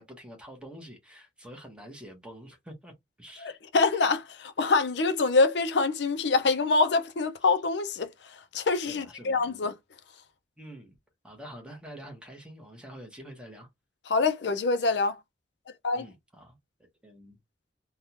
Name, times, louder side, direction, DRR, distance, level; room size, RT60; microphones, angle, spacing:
voice 1, 0.0-3.6 8.9-9.6 10.6-11.0 11.2-13.7 15.9-16.6 17.0-17.4, equal, 5° right, 1.1 m, -46 dB
voice 2, 3.4-8.1 8.5-9.7 14.1-15.2 15.8-16.1, left 3 dB, 65° left, 0.5 m, -25 dB
3.5 x 2.3 x 2.8 m
head